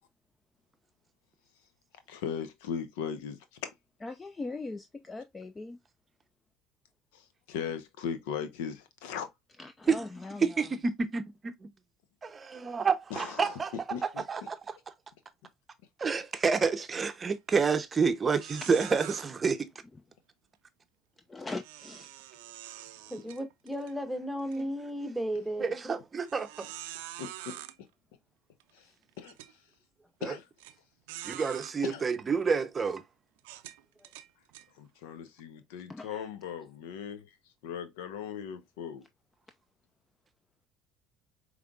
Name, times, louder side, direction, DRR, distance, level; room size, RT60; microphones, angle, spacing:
voice 1, 2.1-3.7 7.1-7.2 7.5-9.3 13.1-13.5 13.9-14.2 27.2-27.6 29.2-29.3 30.2-30.4 31.8-32.0 34.8-37.2 37.6-39.0, left 7 dB, 85° left, 0.7 m, -38 dB
voice 2, 4.0-5.8 9.6-10.6 18.6-18.7 21.3-22.1 35.9-36.2, left 3 dB, 20° left, 0.4 m, -40 dB
voice 3, 10.4-11.5 12.2-13.8 14.0-14.9 16.0-19.7 24.6-24.7 25.0-25.1 25.6-26.7 30.2-30.4 31.2-33.0, right 5 dB, 30° right, 0.6 m, -29 dB
sound 1, 17.3-17.6 17.9-18.0 18.4-19.2 21.6-23.9 24.4-24.6 25.2-25.3 26.3-27.7 28.6-28.7 29.2-29.5 30.6-30.7 31.1-31.7 32.4-32.6 33.4-34.7, right 14 dB, 90° right, 0.4 m, -45 dB
voice 4, 23.1-25.7, equal, 5° right, 1.0 m, -34 dB
5.1 x 3.2 x 2.3 m
supercardioid pair, 90°, 0 cm